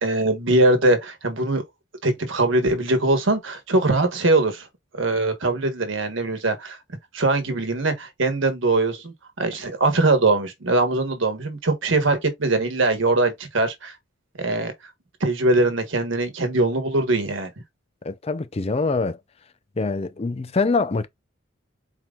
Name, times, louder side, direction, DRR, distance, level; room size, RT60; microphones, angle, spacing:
voice 1, 0.0-1.6 2.0-4.7 4.9-6.8 7.1-13.9 14.4-14.7 15.2-17.5, right 2 dB, 70° right, 1.3 m, -21 dB
voice 2, 18.0-19.2 19.8-21.1, left 3 dB, 30° left, 0.5 m, -24 dB
4.5 x 3.7 x 2.4 m
head